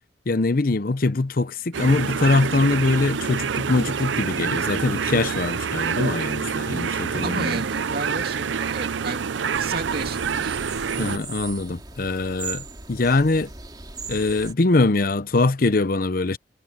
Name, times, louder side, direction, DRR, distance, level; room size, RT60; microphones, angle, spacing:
voice 1, 0.3-7.6 11.0-13.5 14.1-16.4, left 3 dB, 50° left, 0.7 m, -22 dB
sound 1, 1.7-11.2, right 6 dB, 90° right, 0.5 m, -27 dB
voice 2, 7.2-9.3 9.6-10.7, right 3 dB, 55° right, 2.5 m, -32 dB
sound 2, 9.5-14.5, right 4 dB, 25° right, 2.6 m, -38 dB
head